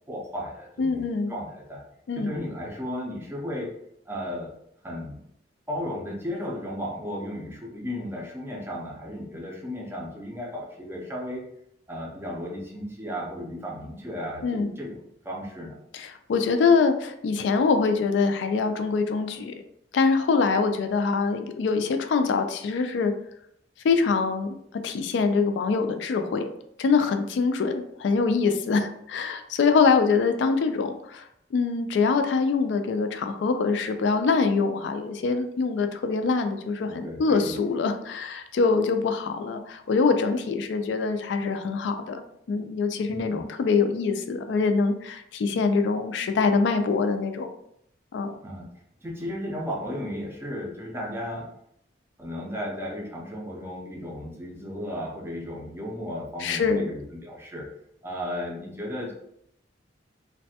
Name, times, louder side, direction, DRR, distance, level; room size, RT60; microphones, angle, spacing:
voice 1, 0.1-1.8 2.2-3.7 4.1-4.6 4.8-5.2 5.7-11.5 11.9-15.0 15.2-15.8 36.8-37.6 43.1-43.4 48.4-48.7 49.0-51.5 52.2-57.7 58.0-59.1, equal, 10° right, -2 dB, 0.5 m, -34 dB
voice 2, 0.8-1.3 2.1-2.3 14.4-14.7 15.9-19.5 19.9-23.1 23.8-24.6 24.8-26.5 26.8-42.2 42.5-47.5 48.1-48.4 56.4-56.9, left 4 dB, 70° left, 7 dB, 0.3 m, -24 dB
3.1 x 2.1 x 2.7 m, 0.75 s
head